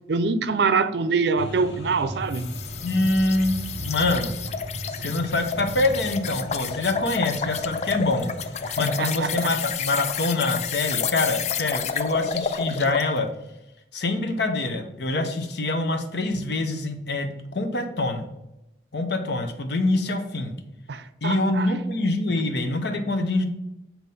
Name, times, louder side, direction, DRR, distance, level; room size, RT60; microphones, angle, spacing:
voice 1, 0.1-2.5 8.7-9.5 20.9-21.7, right 4 dB, 75° right, 0.5 m, -25 dB
sound 1, 1.4-8.8, right 1 dB, 90° left, 1.6 m, -37 dB
sound 2, 2.3-13.1, left 7 dB, 40° left, 0.3 m, -30 dB
voice 2, 2.8-4.3 4.9-8.3 8.8-13.3 13.9-17.3 17.5-18.2 18.9-20.5 21.2-23.4, left 2 dB, 70° left, 0.9 m, -25 dB
7.5 x 2.9 x 5.4 m
head